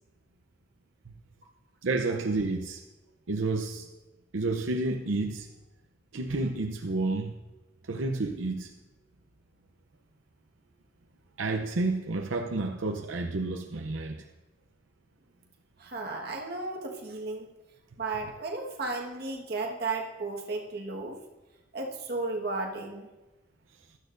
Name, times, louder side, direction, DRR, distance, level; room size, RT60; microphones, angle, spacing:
voice 1, 1.8-2.8 3.3-3.9 4.3-5.5 6.1-7.3 7.8-8.7 11.4-14.2, right 3 dB, 90° right, 3 dB, 0.7 m, -30 dB
voice 2, 15.8-17.5 18.0-21.2 21.7-23.1, right 3 dB, 55° right, 0 dB, 1.5 m, -34 dB
15.5 x 12.5 x 2.6 m, 1.1 s
head